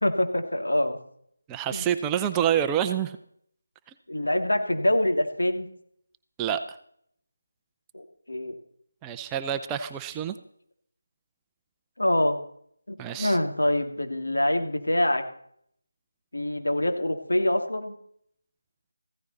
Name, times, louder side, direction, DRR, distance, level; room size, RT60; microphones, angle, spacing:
voice 1, 0.0-1.0 1.7-1.9 4.1-5.7 7.9-8.5 12.0-12.4 12.9-15.2 16.3-17.9, left 1 dB, 80° left, 5 dB, 2.3 m, -25 dB
voice 2, 1.5-3.2 6.4-6.8 9.0-10.4 13.0-13.4, right 9 dB, 10° right, 7 dB, 0.6 m, -27 dB
15.5 x 14.0 x 4.1 m, 0.66 s
figure-of-eight pair, 160°, 0 cm